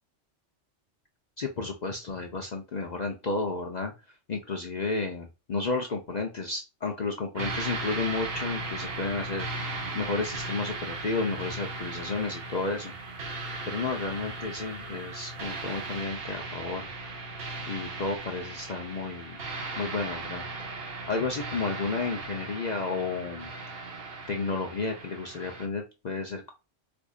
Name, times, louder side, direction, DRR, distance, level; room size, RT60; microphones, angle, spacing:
voice 1, 1.4-9.5 9.9-12.9 13.7-16.9 17.7-19.4 19.8-20.4 20.8-23.5 24.3-26.5, left 3 dB, 50° left, 2 dB, 0.5 m, -32 dB
sound 1, 7.4-25.7, right 3 dB, 55° right, 1.0 m, -37 dB
4.6 x 2.5 x 2.3 m, 0.28 s
omnidirectional pair, 1.3 m